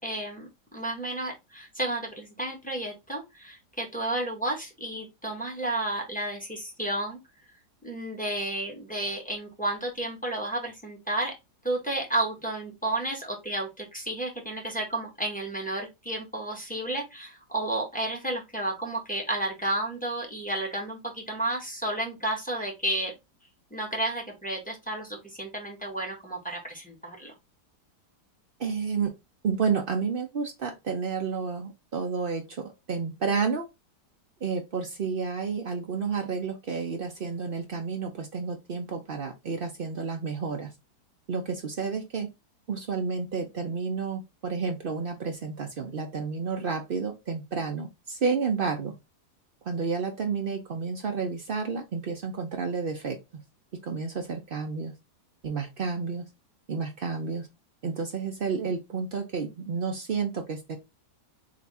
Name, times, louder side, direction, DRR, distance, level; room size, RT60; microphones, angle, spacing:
voice 1, 0.0-7.2 7.8-11.3 11.6-23.1 23.7-27.3, right 1 dB, 5° left, 1.0 m, -32 dB
voice 2, 28.6-29.1 29.4-33.7 34.4-40.7 41.3-42.3 42.7-49.0 49.6-53.4 53.8-54.9 55.4-56.3 56.7-57.5 57.8-60.8, right 5 dB, 80° right, 0.4 m, -30 dB
3.4 x 2.8 x 4.1 m
omnidirectional pair, 1.8 m